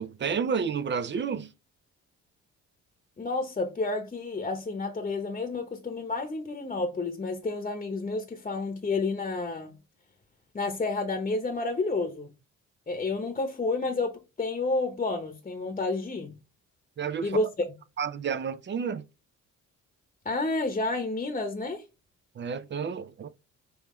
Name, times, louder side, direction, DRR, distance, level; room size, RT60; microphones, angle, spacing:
voice 1, 0.0-1.5 17.0-17.4 18.0-19.0 22.4-23.3, right 6 dB, 40° right, 0.5 m, -30 dB
voice 2, 3.2-9.7 10.5-12.3 12.9-16.3 17.2-17.6 20.2-21.8, left 3 dB, 25° left, 1.0 m, -30 dB
5.5 x 3.1 x 3.1 m
cardioid pair, 90°, 30 cm